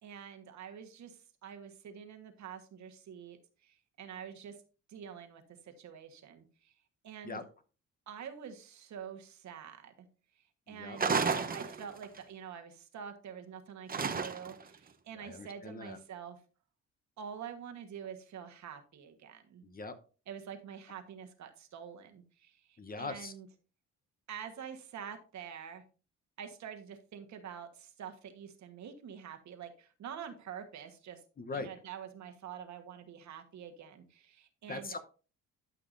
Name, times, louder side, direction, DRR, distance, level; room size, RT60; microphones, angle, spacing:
voice 1, 0.0-4.6 4.9-6.7 7.0-7.4 8.1-10.1 10.3-16.4 17.2-19.6 20.3-23.5 24.3-25.8 26.4-31.2 31.5-35.0, right 8 dB, 70° right, 6 dB, 1.4 m, -47 dB
voice 2, 10.7-11.0 15.1-16.0 19.6-20.0 22.8-23.3 31.4-31.7 34.7-35.0, left 3 dB, 30° left, 9 dB, 0.9 m, -41 dB
sound 1, 11.0-12.2 13.9-14.7, right 5 dB, 30° right, 0.9 m, -32 dB
12.0 x 5.9 x 2.6 m, 0.36 s
cardioid pair, 90°, 30 cm